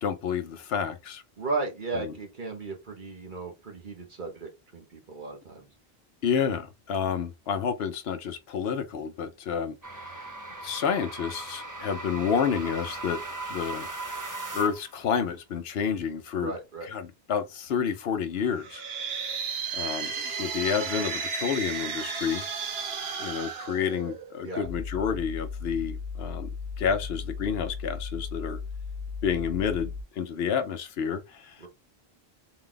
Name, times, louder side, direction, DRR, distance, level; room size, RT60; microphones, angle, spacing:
voice 1, 0.0-1.2 2.0-2.1 6.2-10.3 10.6-13.2 13.5-13.9 14.5-16.5 16.8-18.8 19.7-22.4 23.2-26.5 26.8-28.6 29.2-31.7, left 7 dB, 75° left, 0.8 m, -29 dB
voice 2, 1.4-5.7 16.4-16.9 24.4-24.7 31.6-31.7, right 3 dB, 50° right, 1.1 m, -35 dB
sound 1, 9.8-15.0, right 2 dB, 20° right, 0.6 m, -38 dB
sound 2, 18.5-24.5, right 6 dB, 75° right, 1.0 m, -34 dB
sound 3, 24.6-30.0, left 5 dB, 15° left, 1.0 m, -36 dB
4.0 x 2.3 x 3.7 m
omnidirectional pair, 1.1 m